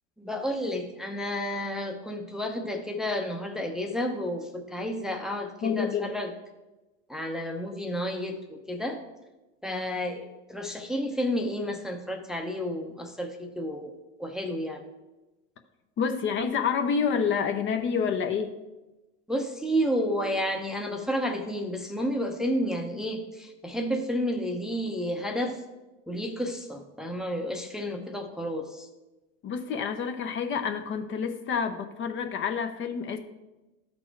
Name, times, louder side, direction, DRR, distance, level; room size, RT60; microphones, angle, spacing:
voice 1, 0.2-6.3 7.1-9.0 9.6-13.9 14.2-14.8 19.3-25.6 26.1-28.9, equal, ahead, 3 dB, 0.7 m, -31 dB
voice 2, 5.6-6.1 16.0-18.5 29.4-33.2, left 6 dB, 35° left, 7 dB, 0.7 m, -28 dB
13.0 x 4.3 x 4.5 m, 1.1 s
supercardioid pair, 110°, 36 cm